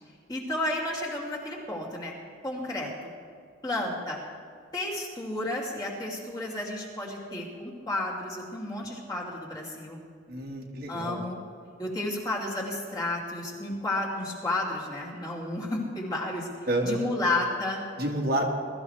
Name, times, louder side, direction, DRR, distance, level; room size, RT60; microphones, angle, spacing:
voice 1, 0.3-2.1 2.4-3.1 3.6-4.2 4.7-10.0 10.9-11.4 11.8-16.5 16.8-17.8, left 2 dB, 20° left, -4 dB, 2.6 m, -32 dB
voice 2, 10.3-11.2 16.7-17.1 18.0-18.5, right 1 dB, 55° right, 0 dB, 1.7 m, -29 dB
22.0 x 13.5 x 3.4 m, 2.2 s
head